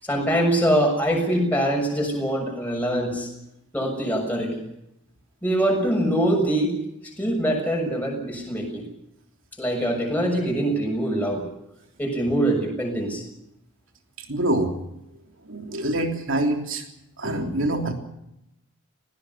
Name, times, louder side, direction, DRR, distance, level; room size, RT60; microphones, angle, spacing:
voice 1, 0.0-3.3 3.7-4.5 5.4-6.8 7.2-8.8 9.6-11.4 12.0-13.3, right 1 dB, 10° left, 0 dB, 6.8 m, -23 dB
voice 2, 14.3-14.8 15.4-16.8 17.2-17.9, right 1 dB, 60° right, 3 dB, 3.3 m, -25 dB
20.0 x 17.5 x 9.7 m, 0.84 s
head